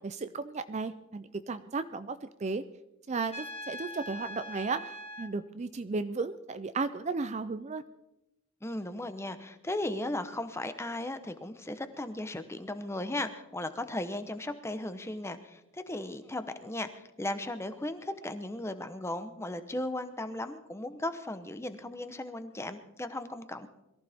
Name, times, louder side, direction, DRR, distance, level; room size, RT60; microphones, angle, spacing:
voice 1, 0.0-2.6 3.1-4.8 5.2-7.8, right 4 dB, 30° right, 11 dB, 0.4 m, -34 dB
Trumpet, 3.3-5.3, left 1 dB, 30° left, 1.6 m, -42 dB
voice 2, 8.6-23.7, left 1 dB, 10° left, 10 dB, 0.8 m, -36 dB
22.5 x 14.5 x 3.5 m, 0.93 s
head